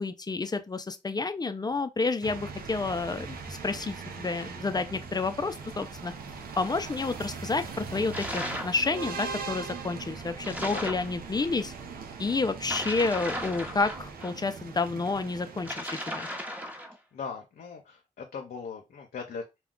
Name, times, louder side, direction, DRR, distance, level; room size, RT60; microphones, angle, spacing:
voice 1, 0.0-6.1 6.6-11.7 12.2-16.3, left 3 dB, 25° left, 0.5 m, -30 dB
sound 1, 2.2-15.7, right 5 dB, 85° right, 0.5 m, -41 dB
sound 2, 2.5-14.1, equal, 55° right, 1.0 m, -51 dB
sound 3, 8.1-8.8 10.4-11.1 12.6-14.3 15.6-17.0, equal, 10° right, 0.8 m, -36 dB
voice 2, 10.7-11.1 17.1-19.4, left 5 dB, 75° left, 0.7 m, -39 dB
2.3 x 2.2 x 3.7 m
cardioid pair, 55°, 15 cm